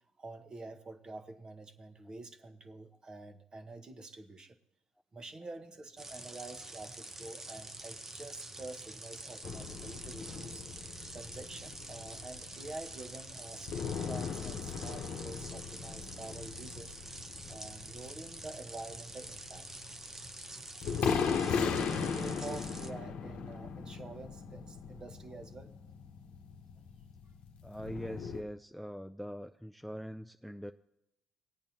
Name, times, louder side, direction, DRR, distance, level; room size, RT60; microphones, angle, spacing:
voice 1, 0.2-4.6 5.1-10.6 11.1-17.0 17.5-19.7 21.2-25.7, right 2 dB, 35° right, 7 dB, 1.1 m, -47 dB
sound 1, 6.0-22.9, right 2 dB, 20° right, 0.8 m, -47 dB
sound 2, 9.4-28.4, left 6 dB, 65° left, 0.9 m, -38 dB
voice 2, 27.6-30.7, equal, ahead, 8 dB, 0.4 m, -43 dB
19.0 x 8.7 x 2.8 m, 0.82 s
supercardioid pair, 80°, 2 cm